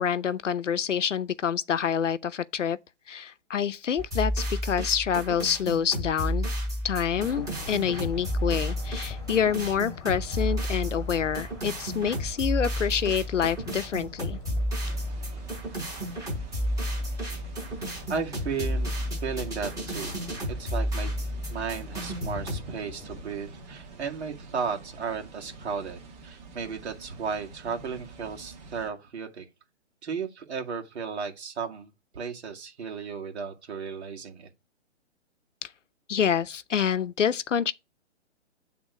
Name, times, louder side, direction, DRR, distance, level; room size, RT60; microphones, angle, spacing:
voice 1, 0.0-2.8 3.1-6.5 6.8-14.4 35.6-35.7 36.1-37.7, left 8 dB, 85° left, 0.7 m, -27 dB
sound 1, 4.0-22.6, equal, 10° right, 3.9 m, -32 dB
sound 2, 7.1-23.2, left 4 dB, 10° left, 2.5 m, -45 dB
sound 3, 14.8-28.9, right 3 dB, 35° right, 1.8 m, -47 dB
voice 2, 18.1-20.2 20.6-21.1 21.5-29.5 30.0-34.5, right 5 dB, 65° right, 2.1 m, -34 dB
8.9 x 3.6 x 4.7 m
hypercardioid pair, 145°, 36 cm